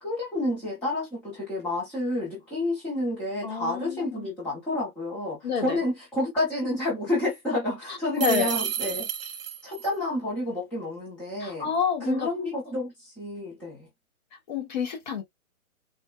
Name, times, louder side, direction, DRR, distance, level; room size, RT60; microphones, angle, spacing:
voice 1, 0.0-9.1 9.6-11.7 12.0-13.9, left 1 dB, 5° left, 0.6 m, -29 dB
voice 2, 3.4-4.3 5.4-5.8 7.9-8.5 11.4-12.3 14.5-15.2, left 6 dB, 30° left, 0.9 m, -29 dB
sound 1, 8.2-9.9, right 9 dB, 65° right, 0.9 m, -31 dB
4.2 x 2.1 x 2.3 m
hypercardioid pair, 145°, 43 cm